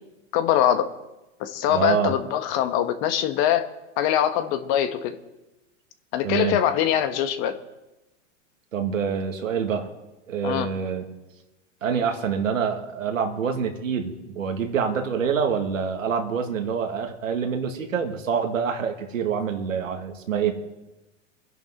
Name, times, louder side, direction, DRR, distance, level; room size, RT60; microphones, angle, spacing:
voice 1, 0.3-0.9 1.4-3.7 4.0-5.1 6.1-7.6 10.4-10.7, left 10 dB, 50° left, 9 dB, 1.6 m, -23 dB
voice 2, 1.7-2.1 6.2-6.6 8.7-9.9 10.3-11.1 11.8-20.5, right 6 dB, 90° right, 4 dB, 2.2 m, -26 dB
25.0 x 10.5 x 3.8 m, 1.0 s
hypercardioid pair, 110°, 38 cm